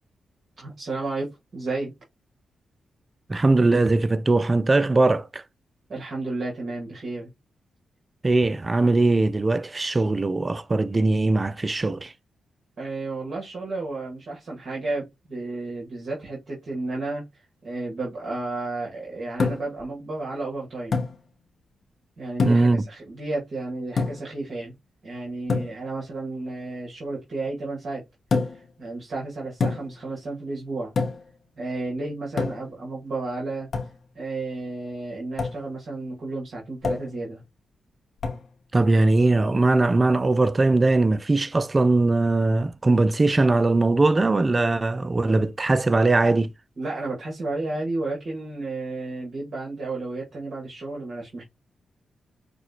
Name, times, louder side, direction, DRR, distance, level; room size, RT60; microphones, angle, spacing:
voice 1, 0.6-1.9 5.9-7.3 12.8-21.0 22.2-24.7 25.0-28.0 28.4-30.9 31.6-33.7 34.1-37.4 46.8-51.4, right 2 dB, 60° right, 1.8 m, -32 dB
voice 2, 3.3-5.4 8.2-12.1 22.5-22.8 38.7-46.5, right 2 dB, 30° right, 0.5 m, -20 dB
sound 1, 19.4-19.8 20.9-21.2 22.4-22.8 24.0-24.3 25.5-25.8 28.3-28.7 29.6-30.0 31.0-31.3 32.4-32.8 33.7-34.0 35.4-35.6 36.8-37.2 38.2-38.5, left 4 dB, 65° left, 1.1 m, -26 dB
6.0 x 2.4 x 2.8 m
supercardioid pair, 50°, 0 cm